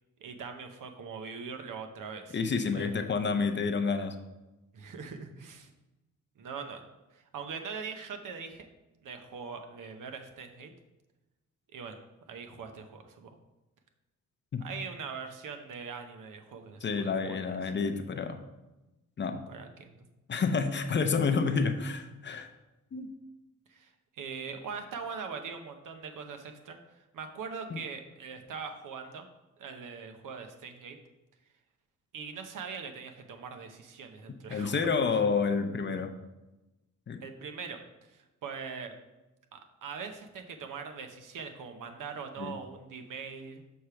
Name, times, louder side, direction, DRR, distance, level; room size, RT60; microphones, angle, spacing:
voice 1, 0.2-2.4 2.7-2.9 4.7-5.7 6.4-6.8 7.1-8.7 9.0-10.7 11.7-12.0 12.3-13.3 14.6-17.5 19.5-20.1 23.7-26.8 27.1-29.3 29.6-31.0 32.1-34.9 37.2-38.9 39.5-43.6, right 5 dB, 85° right, 6 dB, 0.8 m, -42 dB
voice 2, 2.3-4.2 14.5-14.7 16.8-18.4 19.2-19.4 20.3-22.5 22.9-23.1 27.7-27.8 34.3-36.1 37.1-37.2 42.4-42.6, left 5 dB, 35° left, 6 dB, 0.6 m, -29 dB
6.4 x 3.3 x 5.7 m, 1.0 s
wide cardioid pair, 120°, 31 cm